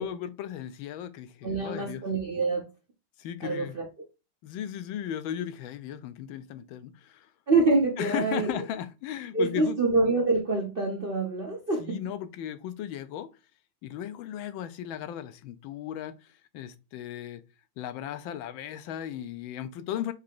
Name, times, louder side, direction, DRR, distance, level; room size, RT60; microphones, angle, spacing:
voice 1, 0.0-2.0 3.2-3.8 4.4-7.3 8.0-9.8 11.8-13.3 13.8-17.4 17.8-20.1, left 10 dB, 80° left, 1.3 m, -36 dB
voice 2, 1.4-2.6 3.4-3.9 7.5-8.6 9.3-12.0, right 3 dB, 50° right, 0.7 m, -26 dB
5.0 x 2.8 x 3.6 m
omnidirectional pair, 2.2 m